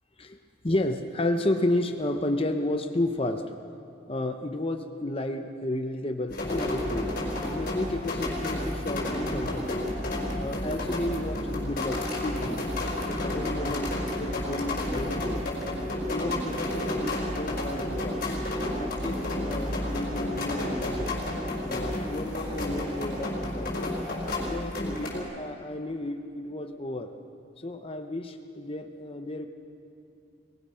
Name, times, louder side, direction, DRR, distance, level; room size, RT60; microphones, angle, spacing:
voice 1, 0.6-3.5 4.1-7.1 7.6-9.9 10.4-12.7 13.1-15.5 16.1-18.2 18.8-21.2 21.6-23.8 24.4-27.2 27.6-29.5, left 1 dB, 30° left, 5 dB, 0.9 m, -32 dB
sound 1, 6.3-25.2, left 1 dB, 50° left, 4.5 m, -31 dB
sound 2, 18.3-19.8 20.3-21.7 22.2-23.4 23.9-24.5, equal, 30° right, 2.4 m, -43 dB
23.5 x 19.5 x 5.7 m, 2.6 s
head